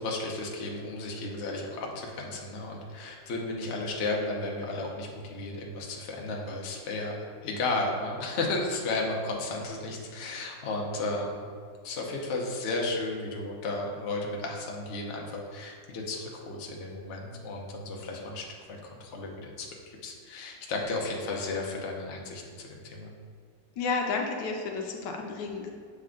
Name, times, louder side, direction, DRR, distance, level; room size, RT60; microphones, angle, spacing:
voice 1, 0.0-7.2 7.4-11.5 11.8-19.7 20.0-23.1, left 2 dB, 55° left, -1 dB, 0.9 m, -33 dB
voice 2, 23.8-25.7, left 4 dB, 75° left, 2 dB, 1.3 m, -31 dB
7.5 x 3.3 x 3.7 m, 2.1 s
omnidirectional pair, 2.0 m